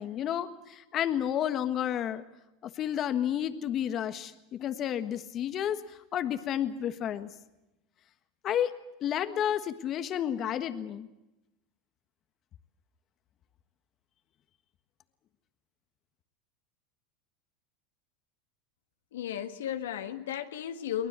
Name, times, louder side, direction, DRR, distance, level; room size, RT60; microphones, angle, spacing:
voice 1, 0.0-2.2 2.8-5.8 6.1-7.3 8.4-8.7 9.0-11.1, left 10 dB, 40° left, 1.5 m, -31 dB
voice 2, 19.1-21.1, left 10 dB, 85° left, 1.5 m, -34 dB
23.5 x 19.5 x 8.1 m
hypercardioid pair, 100°, 0 cm